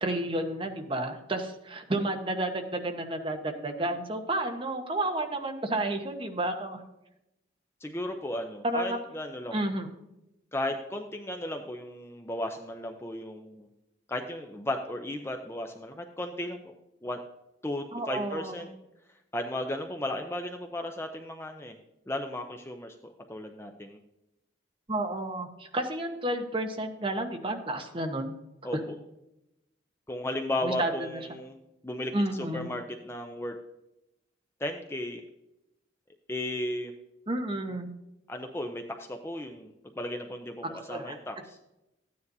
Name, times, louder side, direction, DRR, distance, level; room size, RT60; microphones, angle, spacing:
voice 1, 0.0-6.8 8.6-9.0 9.5-9.9 17.9-18.7 24.9-28.3 28.7-28.8 30.6-31.2 32.1-32.7 37.3-37.9 40.9-41.2, right 1 dB, 30° right, 4 dB, 1.0 m, -31 dB
voice 2, 7.8-9.6 10.5-13.7 14.1-16.7 17.0-17.2 17.6-18.7 19.3-21.8 22.1-23.0 23.3-24.0 28.6-29.0 30.1-31.6 31.8-33.5 34.6-35.2 36.3-36.9 38.3-41.6, left 1 dB, 15° left, 4 dB, 0.5 m, -35 dB
14.0 x 9.6 x 2.7 m, 0.89 s
head